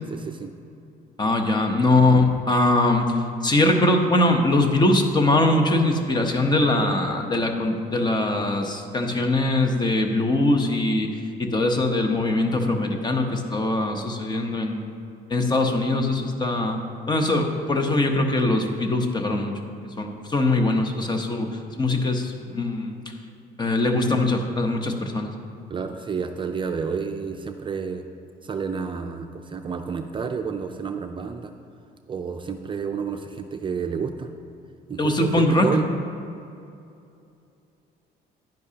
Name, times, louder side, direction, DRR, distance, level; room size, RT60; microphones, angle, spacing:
voice 1, 0.1-0.5 25.7-28.1 28.4-31.5 32.1-34.3 34.9-35.9, right 5 dB, 30° right, 5 dB, 0.5 m, -30 dB
voice 2, 1.2-11.1 11.4-14.9 15.3-16.8 17.1-19.5 20.0-21.5 21.8-23.0 23.6-25.3 35.0-35.7, left 2 dB, 25° left, 4 dB, 1.0 m, -22 dB
10.5 x 10.0 x 2.9 m, 2.6 s
cardioid pair, 110°, 17 cm